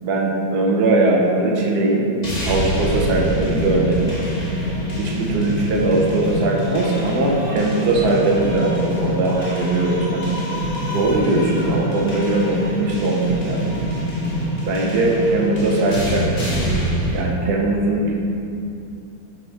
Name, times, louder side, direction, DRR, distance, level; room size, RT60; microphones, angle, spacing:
voice 1, 0.0-2.1 2.4-4.3 5.0-10.3 10.9-13.8 14.6-16.4 17.1-18.2, right 2 dB, 85° right, -1 dB, 1.4 m, -20 dB
sound 1, 2.2-17.2, equal, 30° left, 1.0 m, -25 dB
5.6 x 3.8 x 4.3 m, 2.6 s
omnidirectional pair, 1.7 m